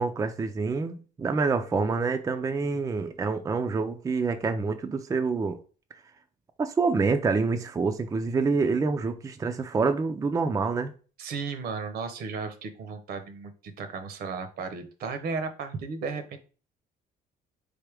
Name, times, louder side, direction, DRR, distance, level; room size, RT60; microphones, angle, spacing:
voice 1, 0.0-5.6 6.6-10.9, right 4 dB, 20° right, 0.4 m, -27 dB
voice 2, 11.2-16.4, right 4 dB, 65° right, 0.8 m, -34 dB
4.0 x 3.4 x 3.3 m
cardioid pair, 110°, 17 cm